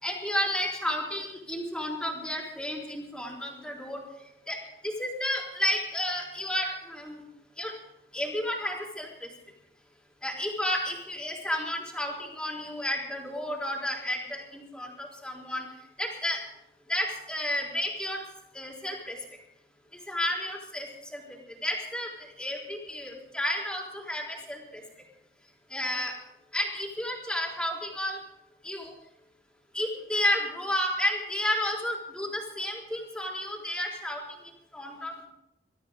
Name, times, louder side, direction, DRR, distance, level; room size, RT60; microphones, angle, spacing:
voice 1, 0.0-4.0 4.5-4.6 4.8-7.2 7.6-7.7 8.1-9.3 10.2-15.7 16.0-16.4 16.9-18.2 18.5-19.2 19.9-24.8 25.7-26.1 26.5-28.2 28.6-28.9 29.7-34.2 34.7-35.3, left 1 dB, 5° left, -1 dB, 3.7 m, -32 dB
22.0 x 13.0 x 3.9 m, 0.83 s
head